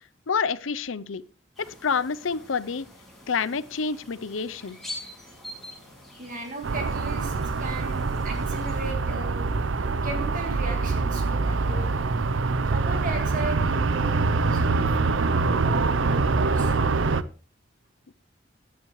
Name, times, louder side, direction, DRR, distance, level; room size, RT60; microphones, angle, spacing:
voice 1, 0.3-1.2 1.6-2.8 3.3-4.8 18.1-18.2, left 5 dB, 85° left, 17 dB, 0.6 m, -28 dB
sound 1, 1.5-8.9, left 1 dB, ahead, 6.1 m, -45 dB
voice 2, 6.2-9.5 10.0-12.1 12.7-16.7, right 2 dB, 40° right, 4 dB, 1.8 m, -37 dB
sound 2, 6.6-17.2, right 3 dB, 75° right, 0.6 m, -24 dB
15.5 x 10.0 x 3.2 m, 0.38 s
head